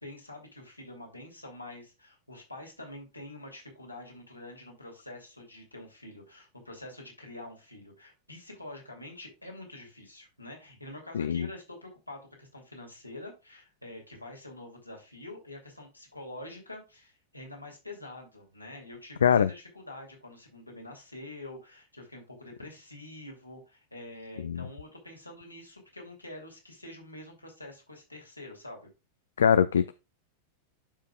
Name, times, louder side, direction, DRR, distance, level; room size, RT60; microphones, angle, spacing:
voice 1, 0.0-28.9, left 1 dB, 85° left, 2.4 m, -46 dB
voice 2, 11.1-11.5 19.2-19.5 24.4-24.7 29.4-29.9, left 7 dB, 65° left, 0.4 m, -23 dB
12.0 x 5.2 x 2.3 m
figure-of-eight pair, 90°, 0 cm